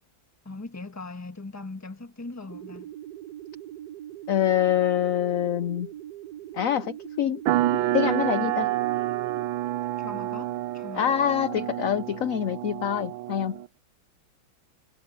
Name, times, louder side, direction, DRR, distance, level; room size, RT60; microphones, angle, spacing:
voice 1, 0.4-2.9 10.0-11.2, left 3 dB, 10° left, 1.1 m, -40 dB
sound 1, 2.5-9.5, right 12 dB, 60° right, 1.3 m, -41 dB
voice 2, 4.3-5.9 6.5-7.4 7.9-8.8 10.9-13.6, left 10 dB, 65° left, 0.8 m, -25 dB
sound 2, 7.5-13.7, right 14 dB, 90° right, 1.4 m, -28 dB
omnidirectional pair, 2.1 m